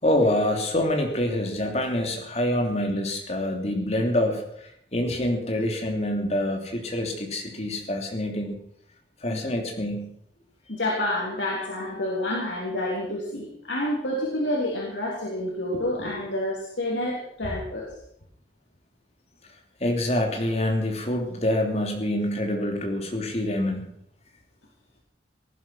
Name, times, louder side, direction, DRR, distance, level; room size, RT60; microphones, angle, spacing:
voice 1, 0.0-8.6 9.2-10.1 12.0-12.4 19.8-23.9, left 1 dB, 35° left, 2 dB, 3.1 m, -26 dB
voice 2, 10.7-17.9, left 1 dB, 85° left, -2 dB, 3.4 m, -28 dB
18.5 x 11.0 x 6.2 m, 0.69 s
head